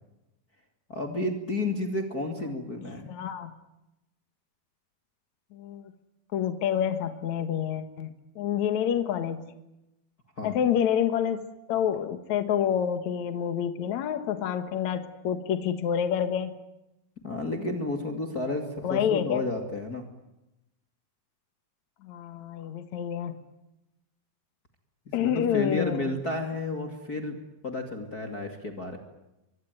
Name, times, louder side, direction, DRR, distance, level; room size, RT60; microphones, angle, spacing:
voice 1, 0.9-3.1 10.4-10.5 17.2-20.1 25.2-29.0, left 2 dB, 30° left, 4 dB, 2.4 m, -31 dB
voice 2, 3.1-3.5 5.5-5.9 6.3-8.1 8.4-9.4 10.4-16.5 18.8-19.4 22.0-23.3 25.1-26.1, left 9 dB, 60° left, 9 dB, 2.5 m, -28 dB
25.5 x 24.0 x 9.3 m, 0.92 s
omnidirectional pair, 4.3 m